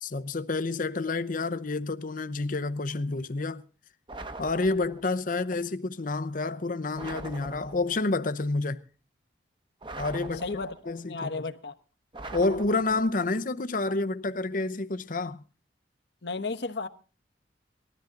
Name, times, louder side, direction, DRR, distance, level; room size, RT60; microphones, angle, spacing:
voice 1, 0.0-3.6 4.4-8.8 10.0-10.5 10.9-11.4 12.3-15.4, left 3 dB, 45° left, 0.8 m, -29 dB
sound 1, 4.1-5.2 6.9-8.1 9.8-11.0 12.1-13.3, right 2 dB, 25° right, 1.1 m, -42 dB
voice 2, 10.4-11.7 16.2-16.9, left 3 dB, 60° left, 1.1 m, -34 dB
20.0 x 13.5 x 3.8 m
head